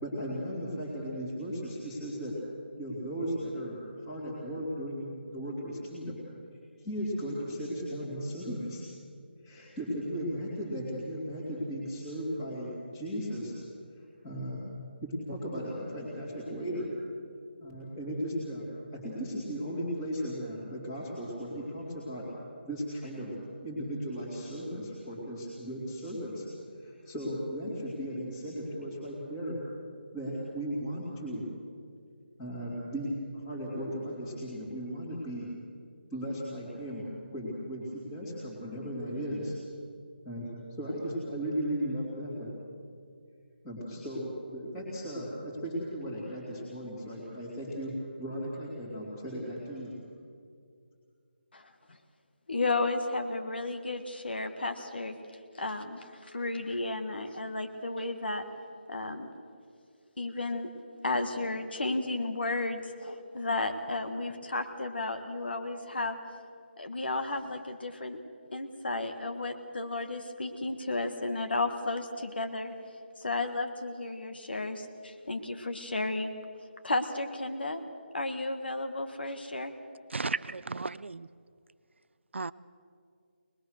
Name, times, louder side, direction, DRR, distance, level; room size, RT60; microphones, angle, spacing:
voice 1, 0.0-2.3 2.7-3.8 4.0-6.2 6.8-8.8 9.4-13.6 14.0-14.6 15.0-16.9 17.6-18.7 18.9-22.2 22.6-23.3 23.6-26.5 26.8-29.6 30.1-31.4 32.4-35.4 36.1-37.1 37.3-39.6 40.2-40.5 40.8-42.5 43.6-47.9 48.2-49.9, equal, 5° left, -8 dB, 2.6 m, -36 dB
voice 2, 52.5-55.2 55.6-58.4 58.9-59.3 60.2-60.7 61.0-66.2 66.8-68.2 68.5-72.7 73.2-76.3 76.8-77.8 78.1-79.7, left 2 dB, 60° left, 8 dB, 1.6 m, -33 dB
voice 3, 80.1-81.3 82.3-82.5, right 3 dB, 90° right, 16 dB, 0.6 m, -34 dB
22.5 x 20.5 x 6.5 m, 2.2 s
figure-of-eight pair, 180°, 6 cm